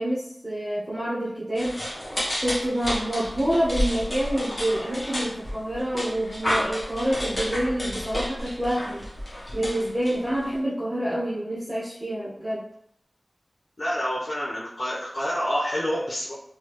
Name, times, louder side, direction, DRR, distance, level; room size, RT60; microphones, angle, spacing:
voice 1, 0.0-1.8 2.4-9.1 9.5-12.6, equal, 5° right, -10 dB, 1.2 m, -27 dB
sound 1, 1.5-10.6, equal, 45° left, 1.1 m, -31 dB
voice 2, 13.8-16.3, equal, 80° left, -7 dB, 0.9 m, -28 dB
3.6 x 2.3 x 3.1 m, 0.72 s
wide cardioid pair, 45°, 0 cm